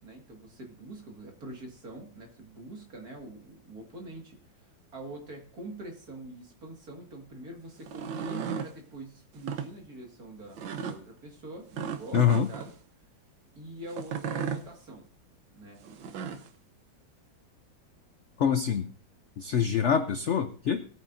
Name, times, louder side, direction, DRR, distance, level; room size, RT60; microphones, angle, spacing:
voice 1, 0.0-10.6 10.9-12.7 13.5-15.1 15.5-15.8, right 2 dB, 50° right, 2 dB, 2.5 m, -44 dB
sound 1, 7.8-8.7 9.3-9.7 10.6-11.0 11.7-12.7 13.9-14.6 15.8-16.5, right 7 dB, 80° right, 1.7 m, -35 dB
voice 2, 12.1-12.5 18.4-18.9 19.4-20.9, left 7 dB, 80° left, 9 dB, 0.6 m, -25 dB
19.5 x 9.2 x 2.6 m, 0.43 s
omnidirectional pair, 2.0 m